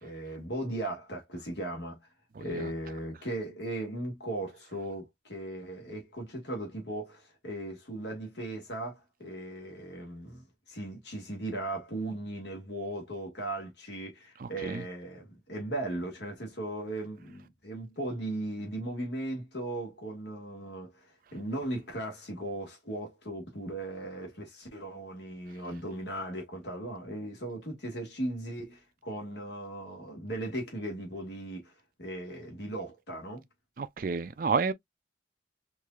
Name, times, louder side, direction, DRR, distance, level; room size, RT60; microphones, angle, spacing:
voice 1, 0.0-2.0 2.4-31.7 32.0-33.4, right 1 dB, 70° left, 1.7 m, -37 dB
voice 2, 2.4-2.7 14.4-14.8 33.8-34.7, right 5 dB, 50° right, 0.4 m, -31 dB
4.6 x 2.7 x 2.4 m
head